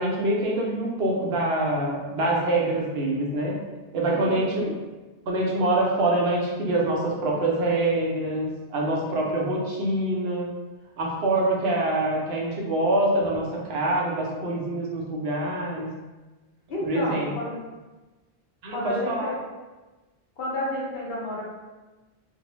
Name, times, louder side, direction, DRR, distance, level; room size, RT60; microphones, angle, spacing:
voice 1, 0.0-3.5 3.9-4.8 5.3-10.5 11.0-15.9 16.8-17.3 18.6-19.3, right 1 dB, 75° right, -3 dB, 0.8 m, -25 dB
voice 2, 4.0-4.8 16.7-17.6 18.7-19.4 20.4-21.4, left 1 dB, 70° left, -4 dB, 0.9 m, -31 dB
2.6 x 2.0 x 3.0 m, 1.2 s
omnidirectional pair, 1.0 m